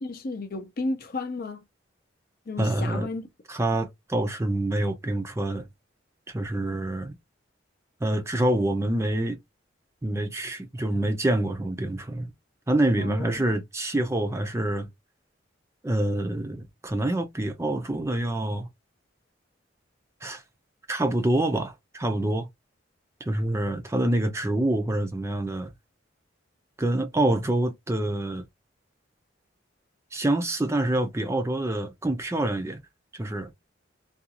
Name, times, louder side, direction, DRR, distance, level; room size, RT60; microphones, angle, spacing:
voice 1, 0.0-1.6 2.5-3.3 13.0-13.4, left 3 dB, 50° left, 0.6 m, -33 dB
voice 2, 2.6-3.1 3.5-5.7 6.3-7.1 8.0-9.4 10.0-12.3 12.7-14.9 15.8-18.7 20.2-20.4 20.9-22.5 23.2-25.7 26.8-28.4 30.1-32.8 33.1-33.5, right 1 dB, 15° right, 0.4 m, -26 dB
2.5 x 2.3 x 2.8 m
head